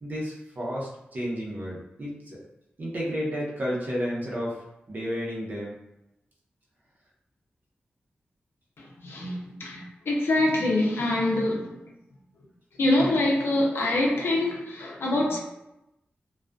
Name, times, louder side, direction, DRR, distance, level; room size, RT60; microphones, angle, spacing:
voice 1, 0.0-2.4 2.8-5.7, equal, 50° right, -4 dB, 0.8 m, -32 dB
voice 2, 9.0-11.8 12.8-15.4, left 1 dB, 85° left, -2 dB, 0.6 m, -25 dB
2.4 x 2.3 x 2.3 m, 0.89 s
cardioid pair, 60°, 4 cm